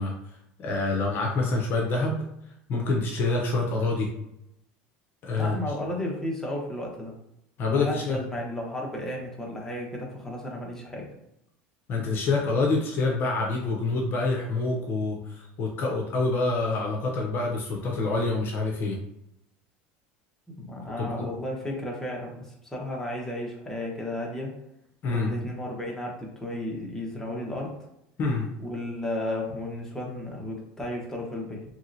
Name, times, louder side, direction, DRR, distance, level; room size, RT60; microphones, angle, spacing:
voice 1, 0.0-2.3 2.7-4.1 5.2-5.6 7.6-8.2 11.9-19.0 21.0-21.3 25.0-25.3 28.2-28.5, left 3 dB, 45° left, 0 dB, 0.6 m, -27 dB
voice 2, 5.3-7.1 7.7-11.1 20.5-24.5 25.1-27.8 28.6-31.6, left 1 dB, 10° left, -2 dB, 0.9 m, -33 dB
3.0 x 2.7 x 2.6 m, 0.81 s
supercardioid pair, 115°, 5 cm